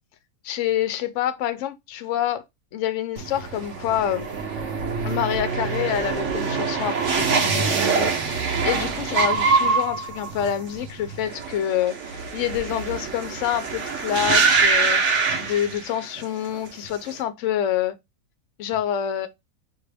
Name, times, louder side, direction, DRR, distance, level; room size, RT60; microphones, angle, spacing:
voice 1, 0.4-2.4 2.7-4.3 5.0-15.0 15.4-17.9 18.6-19.3, left 10 dB, 60° left, 0.8 m, -27 dB
sound 1, 3.2-16.2 16.5-17.1, right 5 dB, 55° right, 1.0 m, -24 dB
5.4 x 2.5 x 3.3 m
omnidirectional pair, 1.7 m